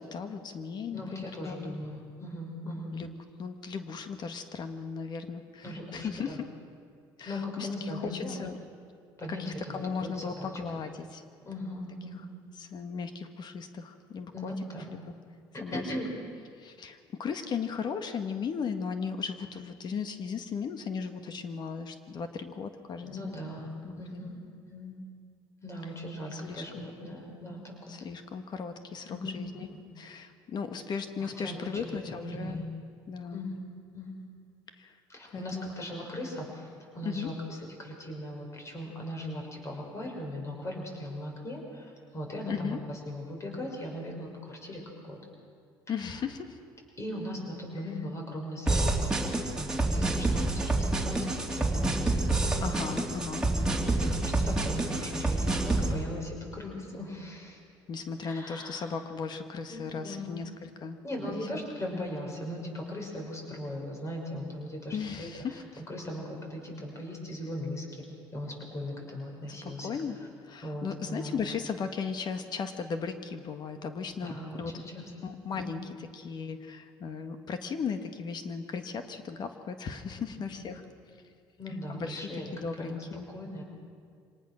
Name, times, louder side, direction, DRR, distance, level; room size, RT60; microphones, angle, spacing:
voice 1, 0.0-1.8 2.9-5.6 5.9-6.4 7.2-8.6 9.3-11.2 12.6-14.5 14.9-15.0 15.6-15.8 16.6-23.3 23.8-24.3 26.3-26.9 27.9-29.7 30.0-32.7 33.1-33.5 34.8-34.9 35.3-35.7 37.0-37.3 42.5-42.8 45.9-46.6 52.6-53.4 57.9-61.0 61.3-61.4 61.9-62.0 64.9-65.6 69.8-70.2 70.4-74.7 75.2-75.8 76.1-80.8 81.9-82.2 82.5-83.3, left 5 dB, 50° left, 8 dB, 1.6 m, -36 dB
voice 2, 0.9-3.0 5.6-6.4 7.2-8.4 9.2-10.5 11.4-12.3 14.3-14.9 15.5-16.1 23.0-24.4 24.7-24.9 25.6-27.9 29.1-29.8 31.2-32.7 33.3-33.6 33.9-34.1 35.1-45.2 47.0-51.3 51.5-52.4 54.0-57.6 58.2-58.9 59.7-60.5 61.0-65.6 65.9-67.9 68.3-69.9 70.6-71.4 74.2-75.8 80.4-80.9 81.6-83.0 83.3-83.6, left 1 dB, 30° left, 0 dB, 6.1 m, -39 dB
sound 1, 48.7-55.9, right 2 dB, 10° right, 2.9 m, -28 dB
25.0 x 18.5 x 6.4 m, 2.2 s
supercardioid pair, 90°, 9 cm